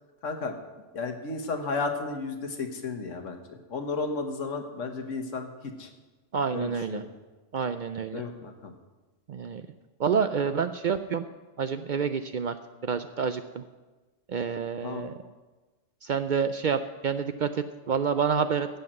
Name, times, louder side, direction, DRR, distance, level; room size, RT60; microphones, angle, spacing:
voice 1, 0.2-0.6 0.9-5.9 6.5-7.1 8.1-8.7 14.8-15.1, left 4 dB, 85° left, 5 dB, 1.6 m, -33 dB
voice 2, 6.3-7.0 7.5-8.2 9.3-9.7 10.0-11.3 11.6-12.5 12.8-13.6 14.3-15.1 16.0-18.7, right 6 dB, 60° right, 10 dB, 0.5 m, -28 dB
15.0 x 5.8 x 7.6 m, 1.2 s
omnidirectional pair, 1.3 m